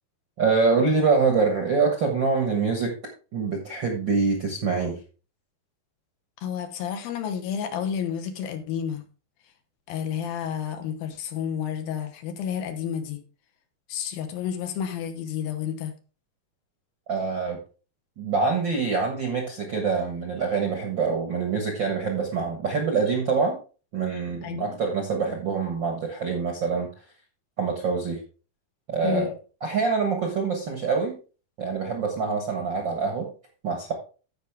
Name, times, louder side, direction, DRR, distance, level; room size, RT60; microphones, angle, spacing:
voice 1, 0.4-2.9 3.3-5.0 17.1-17.6 18.2-23.6 23.9-26.9 27.6-28.2 28.9-29.3 29.6-31.2 31.6-33.3 33.6-33.9, right 4 dB, 55° right, 1.3 m, -25 dB
voice 2, 6.4-9.0 9.9-13.2 13.9-15.9 24.4-24.8 29.0-29.3, left 8 dB, 75° left, 2.9 m, -30 dB
14.5 x 5.4 x 3.5 m
omnidirectional pair, 4.3 m